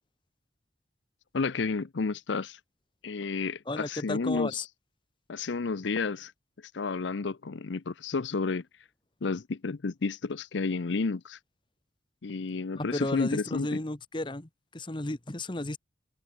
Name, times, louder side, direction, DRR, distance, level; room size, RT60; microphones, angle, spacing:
voice 1, 1.3-2.6 3.0-4.7 5.3-6.3 6.7-8.6 9.2-11.4 12.2-13.8, left 4 dB, 75° left, 0.6 m, -31 dB
voice 2, 3.7-4.6 12.7-15.8, left 1 dB, 25° left, 1.1 m, -33 dB
head